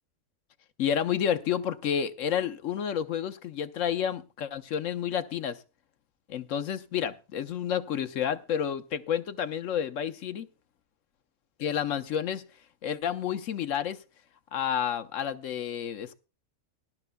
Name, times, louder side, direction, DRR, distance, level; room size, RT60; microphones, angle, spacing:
voice 1, 0.8-5.6 6.3-10.5 11.6-12.4 12.8-14.0 14.5-16.1, left 8 dB, 70° left, 1.1 m, -30 dB
19.0 x 12.0 x 2.2 m
omnidirectional pair, 1.4 m